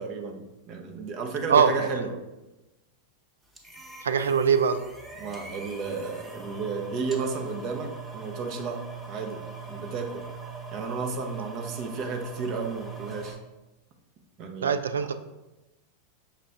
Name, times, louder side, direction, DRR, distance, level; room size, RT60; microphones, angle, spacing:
voice 1, 0.0-2.1 5.2-8.8 9.1-10.3 10.7-13.4 14.4-14.7, right 4 dB, 45° right, 4 dB, 0.7 m, -33 dB
voice 2, 1.5-1.9 4.0-4.8 14.6-15.1, right 6 dB, 85° right, 10 dB, 0.3 m, -22 dB
sound 1, 3.5-13.3, right 4 dB, 10° right, 0.8 m, -41 dB
5.7 x 2.5 x 3.3 m, 1.0 s
hypercardioid pair, 100°, 0 cm